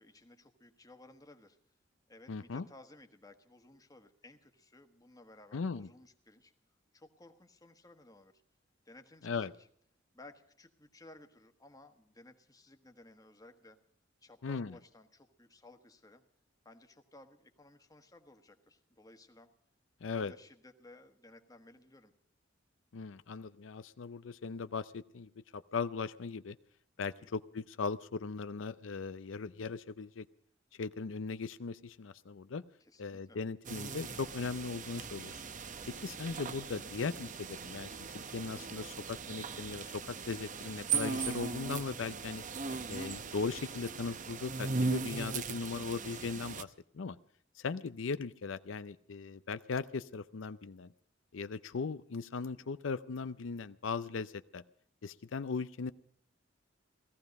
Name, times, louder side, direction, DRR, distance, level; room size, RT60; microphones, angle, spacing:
voice 1, 0.0-1.6 2.1-6.5 6.9-8.3 8.8-9.7 10.1-13.8 14.2-16.2 16.6-19.5 20.1-22.1 27.0-27.3 32.8-33.4 35.8-36.1 42.6-43.0 52.4-52.7, left 2 dB, 20° left, 6 dB, 1.4 m, -58 dB
voice 2, 2.3-2.7 5.5-5.9 9.2-9.5 14.4-14.8 20.0-20.3 22.9-26.6 27.0-30.3 30.8-32.6 33.0-35.4 36.0-42.4 42.9-47.2 47.6-50.9 51.3-54.6 55.0-55.9, left 4 dB, 90° left, 13 dB, 0.6 m, -38 dB
sound 1, 33.6-46.6, right 4 dB, 45° right, 0.8 m, -39 dB
17.5 x 14.5 x 5.3 m, 0.64 s
head